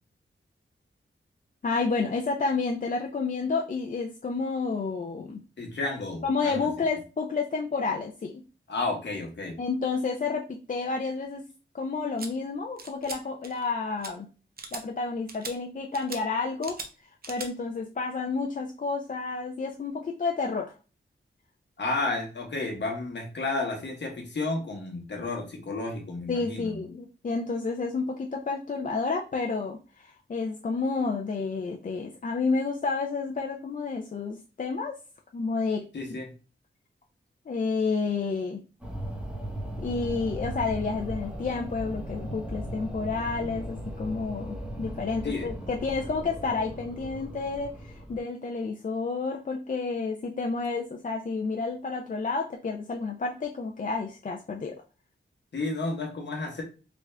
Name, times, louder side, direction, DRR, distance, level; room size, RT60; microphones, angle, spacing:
voice 1, 1.6-5.4 6.2-8.4 9.6-11.4 11.7-14.3 14.7-16.8 17.3-20.7 26.3-34.9 35.3-36.2 37.5-38.6 39.8-54.7, left 4 dB, 40° left, 1 dB, 0.4 m, -30 dB
voice 2, 5.6-6.7 8.7-9.6 21.8-26.9 35.9-36.3 45.2-45.5 55.5-56.6, left 3 dB, 60° left, 2 dB, 1.0 m, -32 dB
sound 1, 12.2-12.3 12.8-13.2 13.4-13.7 14.0-14.1 14.6-14.8 15.3-15.5 15.9-16.2 16.6-16.9 17.2-17.5, right 4 dB, 45° right, 0.6 m, -39 dB
sound 2, 38.8-48.2, equal, 5° right, 0.7 m, -37 dB
3.4 x 2.5 x 3.3 m, 0.34 s
wide cardioid pair, 120°, 21 cm